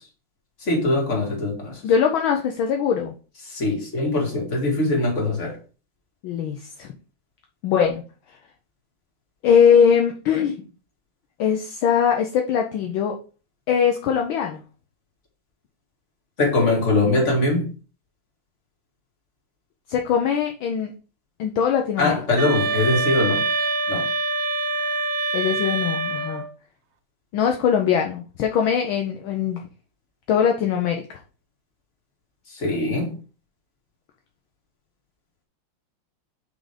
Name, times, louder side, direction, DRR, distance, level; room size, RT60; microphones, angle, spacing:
voice 1, 0.6-1.8 3.5-5.6 16.4-17.7 22.0-23.5 23.9-24.1 32.5-33.1, left 2 dB, 35° left, 2.4 m, -22 dB
voice 2, 1.8-3.1 6.2-6.9 7.6-8.0 8.3-8.4 9.4-10.6 11.4-13.2 13.7-14.6 19.9-20.9 21.4-22.2 25.3-26.4 27.3-29.6 30.3-31.2, left 7 dB, 70° left, 1.5 m, -21 dB
sound 1, 22.4-26.5, right 3 dB, 65° right, 0.9 m, -25 dB
6.1 x 5.0 x 4.9 m
omnidirectional pair, 2.4 m